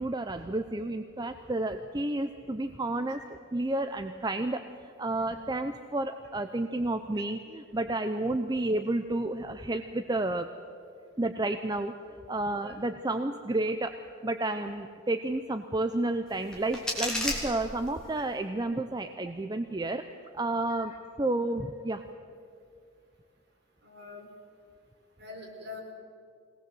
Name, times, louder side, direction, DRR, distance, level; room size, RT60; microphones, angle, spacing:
voice 1, 0.0-10.5 11.2-11.9 12.3-14.0 14.2-20.0 20.3-22.0, right 2 dB, 20° right, 7 dB, 0.6 m, -31 dB
sound 1, 16.3-18.3, left 1 dB, 5° left, 3.2 m, -34 dB
voice 2, 23.8-24.3 25.2-25.8, left 3 dB, 50° right, -1 dB, 4.7 m, -44 dB
22.0 x 18.5 x 7.8 m, 2.3 s
head